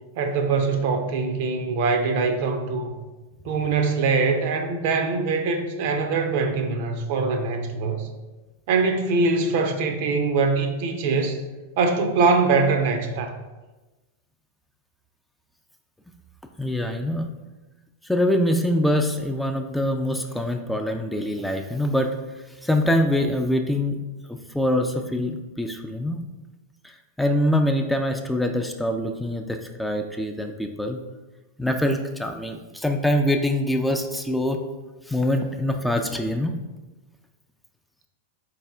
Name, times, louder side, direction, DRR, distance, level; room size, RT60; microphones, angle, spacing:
voice 1, 0.2-2.9 3.4-8.1 8.7-11.4 11.8-13.3, right 4 dB, 55° right, 5 dB, 0.5 m, -23 dB
voice 2, 16.6-17.3 18.1-22.1 22.6-24.0 24.3-26.2 27.2-31.0 31.6-34.6 35.1-36.5, left 1 dB, 5° left, 4 dB, 0.3 m, -24 dB
4.1 x 3.4 x 3.4 m, 1.2 s
figure-of-eight pair, 95°, 0 cm